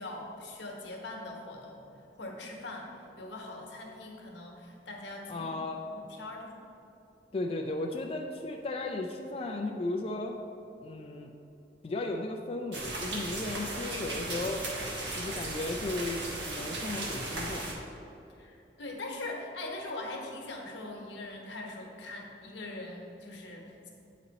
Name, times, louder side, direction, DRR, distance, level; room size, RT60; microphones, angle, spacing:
voice 1, 0.0-2.9 3.2-5.6 5.9-6.5 13.5-13.8 18.4-23.9, left 2 dB, 85° left, 0 dB, 1.2 m, -42 dB
voice 2, 5.3-5.8 7.3-10.4 10.8-11.3 11.8-14.7 15.2-16.2 16.5-17.7, left 2 dB, 35° left, 1 dB, 0.4 m, -35 dB
sound 1, 12.7-17.7, right 2 dB, 90° right, 1.2 m, -36 dB
8.6 x 4.1 x 4.0 m, 2.8 s
head